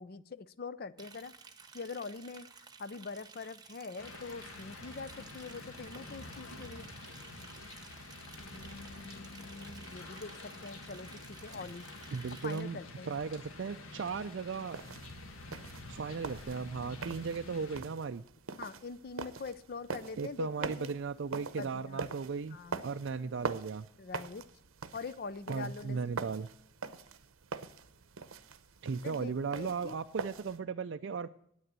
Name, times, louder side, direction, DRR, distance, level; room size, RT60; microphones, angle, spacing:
voice 1, 0.0-1.3 1.7-2.5 2.8-6.9 8.5-11.9 12.4-13.1 18.6-21.0 21.6-22.1 22.5-22.8 24.0-24.5 24.9-26.3 29.0-30.0, left 4 dB, 45° left, 17 dB, 0.4 m, -44 dB
Liquid, 1.0-12.6, right 5 dB, 20° right, 0.8 m, -55 dB
sound 1, 4.0-17.8, left 2 dB, 75° left, 1.4 m, -48 dB
voice 2, 12.1-12.8 13.1-14.8 15.9-18.2 20.2-22.6 22.8-23.9 25.5-26.5 28.8-31.3, right 5 dB, 60° right, 7 dB, 0.4 m, -36 dB
sound 2, 14.6-30.6, right 4 dB, 85° right, 0.8 m, -44 dB
9.6 x 8.9 x 7.3 m, 0.70 s
head